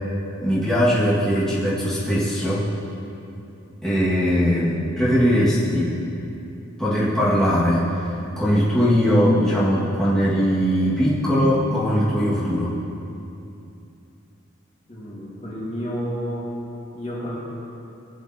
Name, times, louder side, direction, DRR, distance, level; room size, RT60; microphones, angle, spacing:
voice 1, 0.4-2.7 3.8-5.9 6.8-7.9 8.4-12.7, equal, 5° left, -11 dB, 1.8 m, -20 dB
voice 2, 14.9-16.5 16.9-17.4, equal, 35° left, -6 dB, 1.8 m, -30 dB
16.0 x 9.0 x 2.9 m, 2.8 s
head